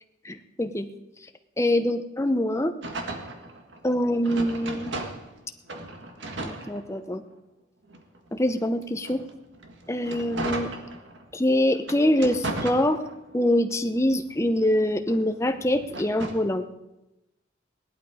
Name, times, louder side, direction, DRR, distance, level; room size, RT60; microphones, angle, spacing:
voice 1, 0.2-0.9 1.6-2.7 3.8-4.9 6.4-7.2 8.3-9.2 9.9-10.7 11.3-13.0 13.3-16.7, left 1 dB, 15° left, 8 dB, 0.7 m, -24 dB
sound 1, 2.8-5.4 5.7-7.3 7.9-11.3 11.8-13.4 13.8-16.5, right 2 dB, 70° right, 1.6 m, -36 dB
17.5 x 11.5 x 4.9 m, 0.94 s
head